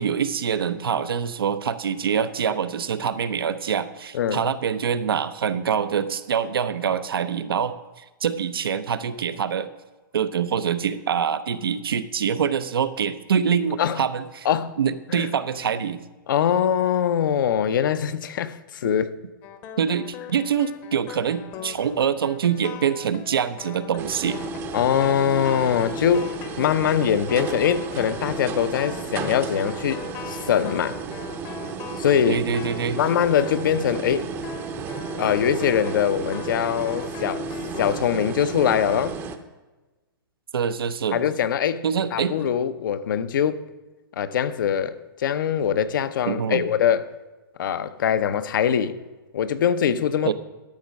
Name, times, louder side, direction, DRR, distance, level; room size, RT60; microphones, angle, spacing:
voice 1, 0.0-9.7 10.1-14.5 14.8-16.0 19.8-24.4 32.3-33.0 40.5-41.2 41.8-42.4 46.3-46.6 50.2-50.3, right 7 dB, 85° right, 0.7 m, -25 dB
voice 2, 4.1-4.5 13.8-14.0 14.4-14.7 15.1-15.3 16.3-19.1 24.7-26.3 26.6-31.0 32.0-32.5 32.9-34.3 35.2-37.5 37.8-39.1 41.1-41.8 42.1-43.6 44.2-47.1 47.6-49.0 49.3-50.3, left 8 dB, 65° left, 0.7 m, -23 dB
sound 1, 19.4-34.1 34.4-38.0, left 9 dB, 30° left, 0.8 m, -40 dB
sound 2, 24.0-39.4, right 5 dB, 20° right, 0.6 m, -33 dB
12.0 x 6.2 x 5.2 m
hypercardioid pair, 140°, 12 cm